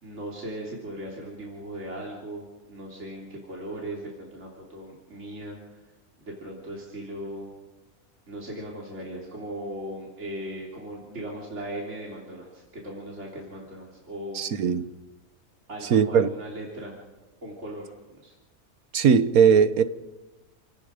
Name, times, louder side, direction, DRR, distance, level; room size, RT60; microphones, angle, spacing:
voice 1, 0.0-5.8 6.3-7.5 8.3-14.4 15.7-16.9 17.4-17.9 18.2-18.3, right 1 dB, 50° right, 3.7 m, -38 dB
voice 2, 14.3-14.8 15.9-16.3 18.9-19.8, right 7 dB, 80° right, 1.5 m, -19 dB
29.5 x 18.5 x 5.1 m
omnidirectional pair, 1.5 m